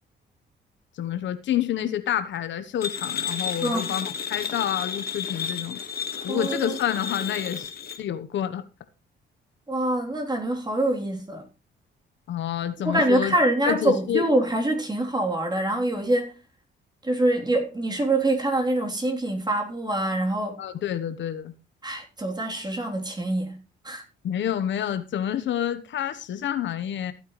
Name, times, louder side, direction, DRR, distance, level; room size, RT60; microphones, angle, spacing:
voice 1, 1.0-5.8 6.2-7.7 8.0-8.6 12.3-13.3 13.6-14.3 20.6-21.5 24.2-27.1, left 10 dB, 70° left, 1.1 m, -28 dB
sound 1, 2.8-8.0, left 7 dB, 50° left, 1.7 m, -32 dB
voice 2, 3.6-3.9 6.3-6.8 9.7-11.5 12.8-16.3 17.0-20.6 21.8-24.0, right 1 dB, 20° right, 3.4 m, -25 dB
15.0 x 9.1 x 3.2 m
cardioid pair, 90°, 20 cm